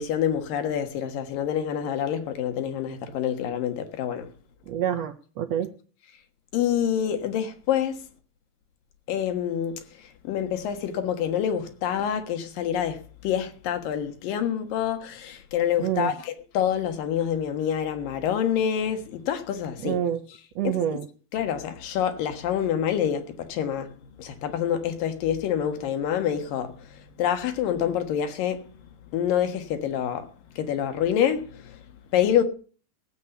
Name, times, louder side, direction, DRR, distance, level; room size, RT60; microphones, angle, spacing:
voice 1, 0.0-4.3 6.5-8.0 9.1-9.7 10.2-20.0 20.6-20.8 21.3-23.9 24.2-28.6 29.1-30.3 30.6-31.8 32.1-32.4, left 9 dB, 75° left, 3.2 m, -27 dB
voice 2, 4.7-5.7 15.8-16.1 19.8-20.2 20.6-21.1, right 10 dB, 80° right, 1.5 m, -27 dB
16.0 x 8.3 x 7.0 m
omnidirectional pair, 4.0 m